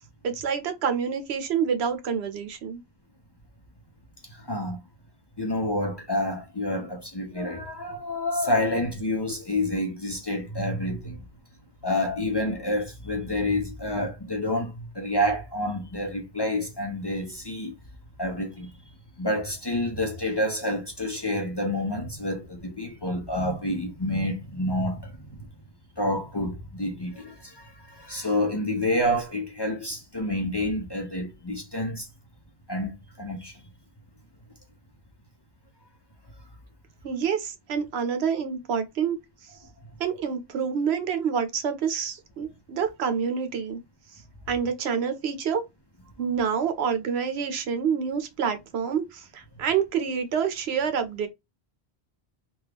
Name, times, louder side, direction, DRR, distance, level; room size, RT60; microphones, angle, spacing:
voice 1, 0.2-2.8 37.0-39.2 40.0-43.8 44.5-45.6 46.2-51.3, right 7 dB, 80° right, 0.9 m, -27 dB
voice 2, 4.3-4.8 5.4-11.2 11.8-17.7 18.2-18.7 19.2-25.4 26.0-32.1 32.7-33.6, left 1 dB, 30° left, 0.5 m, -28 dB
3.5 x 2.3 x 3.4 m
omnidirectional pair, 1.1 m